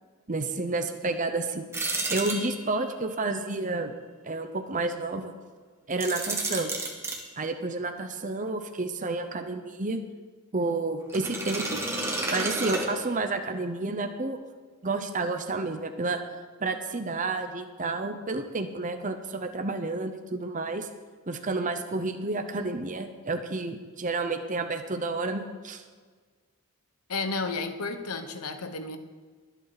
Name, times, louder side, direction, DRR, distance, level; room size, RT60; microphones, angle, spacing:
voice 1, 0.3-1.7 2.1-3.9 4.2-5.3 5.9-6.7 7.4-10.0 10.5-11.8 12.3-14.4 14.8-16.2 16.6-20.9 21.3-25.8, right 3 dB, 35° right, 7 dB, 0.8 m, -30 dB
sound 1, 1.7-2.9 5.9-7.2 11.1-13.4, right 2 dB, 10° right, 1.6 m, -31 dB
voice 2, 27.1-29.0, left 3 dB, 85° left, 8 dB, 1.2 m, -32 dB
23.5 x 8.2 x 4.1 m, 1.5 s
head